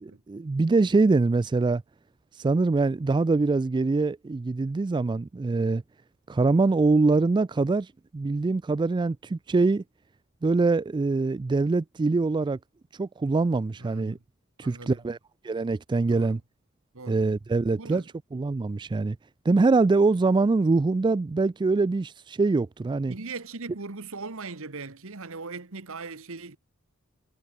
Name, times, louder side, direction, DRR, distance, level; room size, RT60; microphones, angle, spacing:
voice 1, 0.3-1.8 2.3-5.8 6.3-9.8 10.4-12.6 12.9-14.2 14.6-15.2 15.4-16.4 17.1-18.0 18.3-19.2 19.4-23.1, right 3 dB, 20° right, 0.3 m, -24 dB
voice 2, 13.8-14.2 14.6-15.0 16.1-16.4 16.9-17.2 17.7-18.1 22.9-26.6, right 3 dB, 70° right, 1.6 m, -39 dB
head